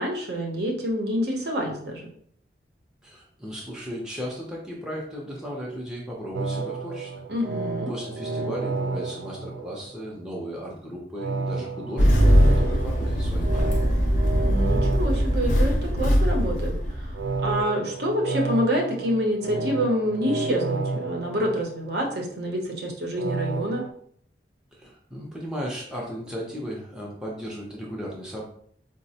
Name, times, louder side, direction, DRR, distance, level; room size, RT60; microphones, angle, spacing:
voice 1, 0.0-2.1 7.3-7.9 14.4-23.8, equal, 60° right, 0 dB, 0.7 m, -27 dB
voice 2, 3.0-7.2 7.9-13.7 24.7-28.5, equal, 5° right, -4 dB, 0.5 m, -35 dB
sound 1, 6.3-10.2 11.1-16.2 17.1-22.2 23.2-23.9, right 3 dB, 85° right, 0.4 m, -31 dB
Engine starting, 12.0-17.5, equal, 45° left, 0.6 m, -21 dB
4.0 x 2.0 x 2.7 m, 0.62 s
head